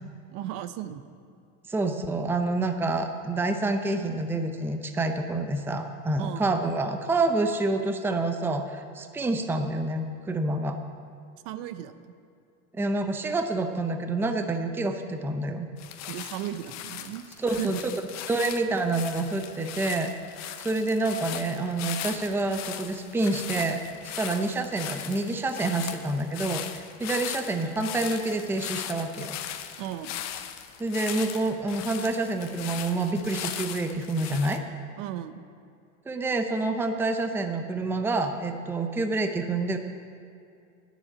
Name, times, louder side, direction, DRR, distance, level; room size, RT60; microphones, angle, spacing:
voice 1, 0.3-1.0 6.2-6.5 11.4-11.9 16.1-17.2 17.5-17.8 29.8-30.2 35.0-35.4, right 12 dB, 55° right, 11 dB, 0.7 m, -35 dB
voice 2, 1.7-10.8 12.7-15.7 17.4-17.9 18.3-20.1 20.6-29.4 30.8-34.6 36.1-39.8, right 2 dB, 5° right, 6 dB, 0.6 m, -28 dB
sound 1, 15.8-34.6, left 10 dB, 45° left, 0.8 m, -38 dB
9.8 x 7.0 x 8.4 m, 2.4 s
supercardioid pair, 115°, 39 cm